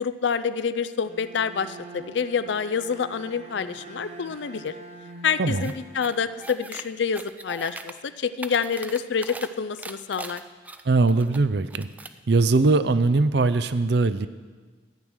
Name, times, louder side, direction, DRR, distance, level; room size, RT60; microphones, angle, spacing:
voice 1, 0.0-4.7 5.2-10.4, left 6 dB, 70° left, 13 dB, 0.4 m, -27 dB
Bowed string instrument, 1.0-7.0, right 2 dB, 35° right, 0.9 m, -45 dB
voice 2, 5.4-5.7 10.9-11.9 12.3-14.3, right 3 dB, 60° right, 13 dB, 0.5 m, -21 dB
sound 1, 5.6-5.7 6.0-6.8 7.1-7.9 8.3-9.5 9.8-11.4 11.7-12.2, right 2 dB, 10° right, 0.3 m, -39 dB
12.0 x 6.3 x 9.0 m, 1.4 s
head